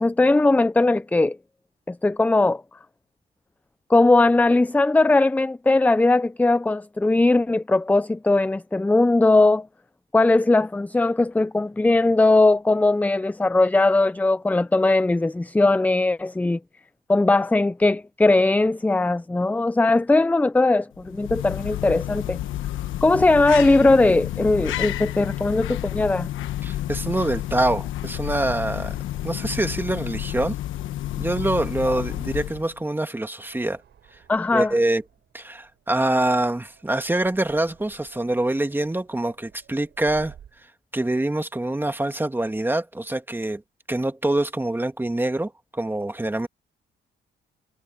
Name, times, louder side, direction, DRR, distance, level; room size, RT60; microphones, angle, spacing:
voice 1, 0.0-1.4 1.9-2.6 3.9-9.7 10.1-16.6 17.1-22.4 23.0-26.3 34.3-34.7, left 2 dB, 10° left, 0.4 m, -19 dB
sound 1, 21.0-32.8, left 13 dB, 80° left, 1.2 m, -30 dB
voice 2, 26.6-29.0 29.2-30.6 31.2-33.8 34.1-34.2 34.5-35.0 35.3-43.6 43.9-46.5, right 1 dB, 10° right, 2.1 m, -25 dB
sound 2, 33.4-40.7, right 9 dB, 65° right, 5.8 m, -53 dB
cardioid pair, 90°, 20 cm